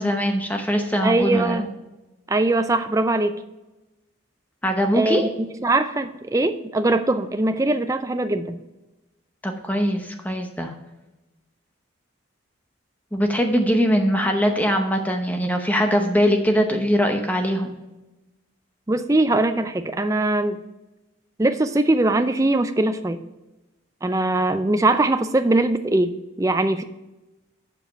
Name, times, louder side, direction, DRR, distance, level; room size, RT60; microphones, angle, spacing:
voice 1, 0.0-1.7 4.6-5.2 9.4-10.7 13.1-17.8, equal, 10° left, 4 dB, 0.8 m, -21 dB
voice 2, 1.0-1.7 2.3-3.4 4.9-5.3 5.6-8.6 18.9-20.6 21.4-23.2 24.0-26.8, right 2 dB, 15° right, 9 dB, 0.4 m, -21 dB
7.5 x 5.0 x 5.6 m, 1.0 s
head